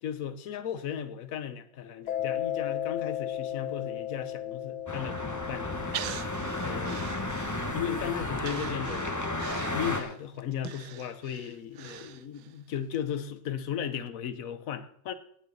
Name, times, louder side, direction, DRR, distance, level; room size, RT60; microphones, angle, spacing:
voice 1, 0.0-5.9 6.6-7.0 7.7-9.2 9.7-15.1, left 9 dB, 55° left, 1.1 m, -36 dB
Mallet percussion, 2.1-8.4, left 11 dB, 85° left, 2.0 m, -36 dB
sound 1, 4.9-10.0, left 2 dB, 15° left, 0.6 m, -33 dB
Breathing, 5.9-7.9 8.4-12.6 12.9-13.0, right 11 dB, 80° right, 1.5 m, -42 dB
17.5 x 8.9 x 4.0 m
omnidirectional pair, 2.1 m